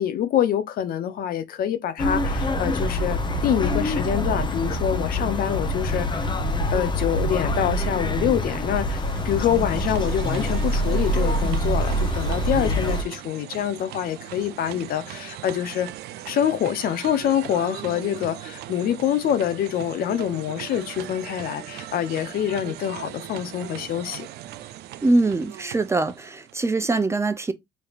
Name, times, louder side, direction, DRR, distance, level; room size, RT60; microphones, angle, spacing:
voice 1, 0.0-6.4 6.7-15.9 16.3-24.3, left 10 dB, 60° left, 0.6 m, -26 dB
sound 1, 2.0-13.0, equal, 25° left, 0.7 m, -25 dB
sound 2, 8.7-26.7, right 13 dB, 75° right, 0.5 m, -39 dB
voice 2, 25.0-27.5, right 2 dB, 15° right, 0.5 m, -23 dB
5.1 x 2.8 x 2.4 m
cardioid pair, 110°, 17 cm